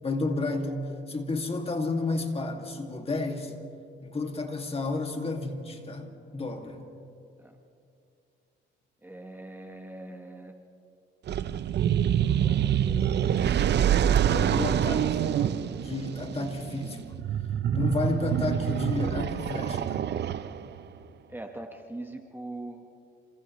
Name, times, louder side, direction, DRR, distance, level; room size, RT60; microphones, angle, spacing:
voice 1, 0.0-3.5 4.0-6.8 14.3-15.2 15.8-17.0 17.7-20.1, left 2 dB, 30° left, 3 dB, 2.3 m, -31 dB
voice 2, 9.0-10.5 12.3-13.2 15.3-15.8 21.3-22.8, right 2 dB, 10° right, 3 dB, 1.5 m, -42 dB
sound 1, 11.3-20.8, right 9 dB, 60° right, 0.7 m, -26 dB
29.0 x 27.5 x 3.2 m, 2.5 s
cardioid pair, 90°, 20 cm